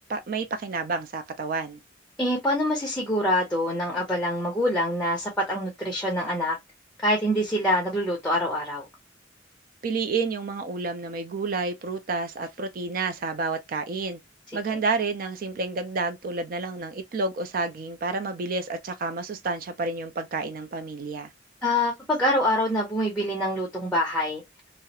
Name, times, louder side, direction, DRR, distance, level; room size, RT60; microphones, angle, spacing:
voice 1, 0.0-1.8 9.8-14.2 14.5-21.3, right 3 dB, 50° right, 0.3 m, -30 dB
voice 2, 2.2-6.6 7.0-8.8 21.6-24.4, left 1 dB, 5° left, 0.5 m, -25 dB
2.3 x 2.0 x 2.6 m
head